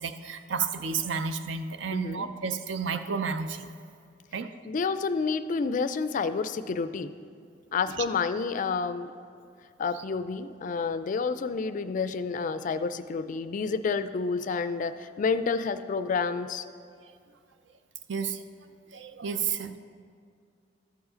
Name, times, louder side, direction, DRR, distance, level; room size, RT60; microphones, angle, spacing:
voice 1, 0.0-3.7 4.3-4.5 8.0-8.1 18.1-18.4 18.9-19.8, right 6 dB, 70° right, 10 dB, 0.5 m, -31 dB
voice 2, 1.9-2.3 4.6-7.1 7.7-9.1 9.8-16.7, left 5 dB, 45° left, 12 dB, 0.3 m, -29 dB
13.0 x 4.8 x 5.0 m, 2.3 s
head